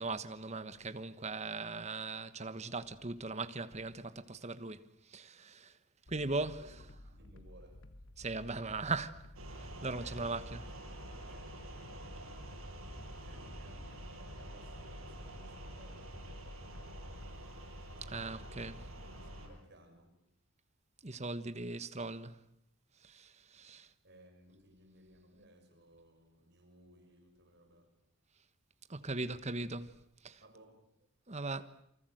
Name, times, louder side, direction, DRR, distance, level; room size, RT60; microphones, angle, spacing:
voice 1, 0.0-4.8 5.1-5.7 6.1-6.6 8.2-9.2 9.6-10.6 18.1-18.8 21.0-22.3 23.0-23.9 28.9-29.9 30.2-30.4 31.3-31.7, right 3 dB, 30° right, 1.3 m, -39 dB
sound 1, 6.1-17.3, left 1 dB, 60° left, 1.2 m, -54 dB
voice 2, 6.6-7.9 10.0-10.9 11.3-12.5 13.2-16.6 19.0-20.2 24.0-28.0 30.4-30.9, right 1 dB, 55° right, 6.4 m, -61 dB
sound 2, 9.3-19.5, right 1 dB, 80° right, 7.3 m, -48 dB
27.5 x 25.0 x 7.9 m
head